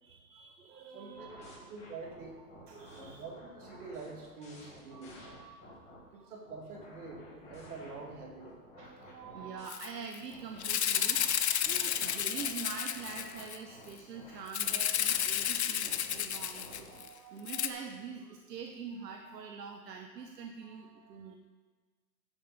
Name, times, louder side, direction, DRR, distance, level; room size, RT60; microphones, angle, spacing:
voice 1, 0.0-1.8 2.6-3.2 4.9-6.3 8.7-21.3, right 5 dB, 85° right, 4 dB, 1.0 m, -45 dB
voice 2, 0.9-1.3 1.6-2.4 3.0-5.2 6.1-8.6, right 3 dB, 65° right, 0 dB, 2.3 m, -46 dB
sound 1, 1.2-6.0 6.5-9.7 10.3-17.0, left 1 dB, 15° left, 1.8 m, -53 dB
Rattle (instrument), 9.7-9.9 10.1-10.2 10.6-13.6 14.5-17.1 17.5-17.7, left 9 dB, 45° left, 0.5 m, -31 dB
10.5 x 6.9 x 4.1 m, 1.3 s
hypercardioid pair, 160°, 48 cm